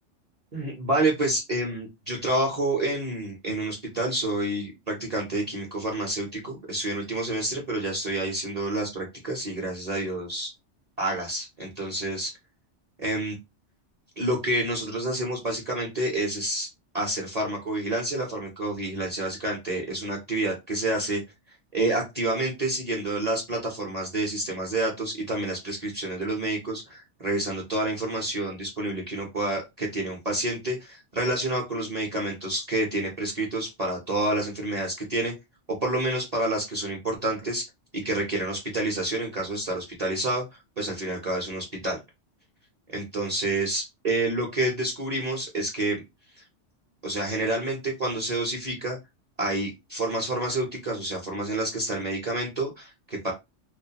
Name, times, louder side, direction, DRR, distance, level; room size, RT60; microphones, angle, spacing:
voice 1, 0.5-10.5 11.0-12.3 13.0-13.4 14.2-16.7 16.9-21.2 21.7-35.3 35.8-37.7 37.9-40.4 40.8-42.0 42.9-46.0 46.4-46.5 47.0-49.0 49.4-53.3, right 1 dB, 40° right, -1 dB, 0.7 m, -28 dB
2.3 x 2.1 x 2.8 m, 0.22 s
omnidirectional pair, 1.2 m